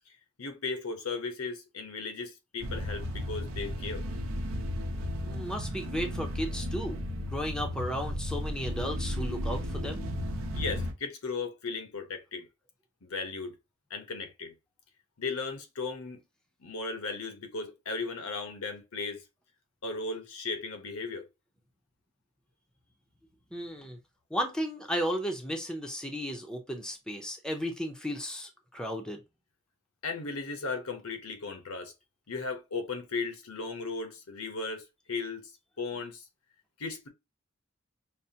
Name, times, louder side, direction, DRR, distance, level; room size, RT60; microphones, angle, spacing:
voice 1, 0.4-4.0 10.5-12.5 13.0-13.5 13.9-14.5 15.2-16.2 16.6-19.2 19.8-21.3 30.0-31.9 32.3-34.8 35.1-35.5 35.8-36.2 36.8-37.1, left 4 dB, 85° left, 0.9 m, -36 dB
sound 1, 2.6-10.9, left 1 dB, 70° right, 0.7 m, -34 dB
voice 2, 5.2-7.0 7.3-10.2 23.5-24.0 24.3-29.2, equal, 5° left, 0.5 m, -34 dB
5.5 x 2.1 x 2.7 m
head